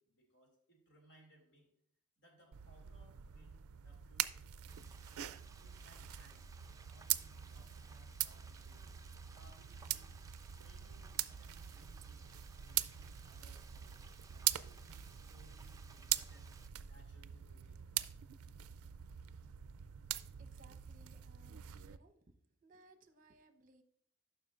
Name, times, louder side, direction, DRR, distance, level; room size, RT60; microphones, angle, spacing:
voice 1, 0.0-1.7 2.2-4.9 5.6-6.5 6.8-8.8 9.3-10.1 10.6-12.3 12.6-14.0 14.3-16.5 16.8-17.8, right 1 dB, 55° left, 1 dB, 2.5 m, -67 dB
sound 1, 2.5-22.0, right 13 dB, 70° right, 0.4 m, -43 dB
Frying (food), 4.7-16.7, right 4 dB, 15° right, 0.5 m, -61 dB
voice 2, 20.4-22.4 22.6-23.8, right 2 dB, 40° right, 7 dB, 0.8 m, -64 dB
11.5 x 5.7 x 2.5 m, 0.70 s
head